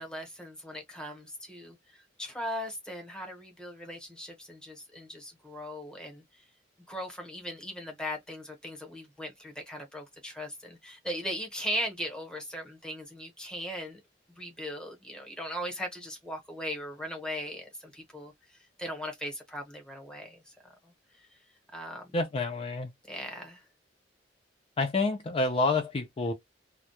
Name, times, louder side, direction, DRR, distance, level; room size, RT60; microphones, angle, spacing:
voice 1, 0.0-6.2 6.9-14.0 14.4-18.3 18.8-20.5 20.8-20.9 21.7-22.1 23.1-23.6, equal, 5° left, 0.8 m, -38 dB
voice 2, 22.1-22.9 24.8-26.3, left 3 dB, 30° left, 0.4 m, -28 dB
2.2 x 2.0 x 2.8 m
head